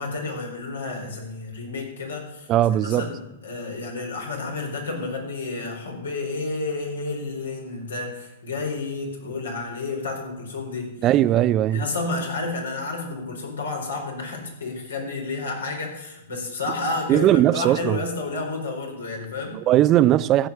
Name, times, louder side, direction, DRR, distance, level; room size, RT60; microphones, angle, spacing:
voice 1, 0.0-10.9 11.7-19.6, left 3 dB, 85° left, 4.6 m, -31 dB
voice 2, 2.5-3.0 11.0-11.8 17.1-18.0 19.7-20.5, right 13 dB, 35° right, 0.4 m, -18 dB
15.0 x 6.3 x 8.4 m
hypercardioid pair, 115°, 0 cm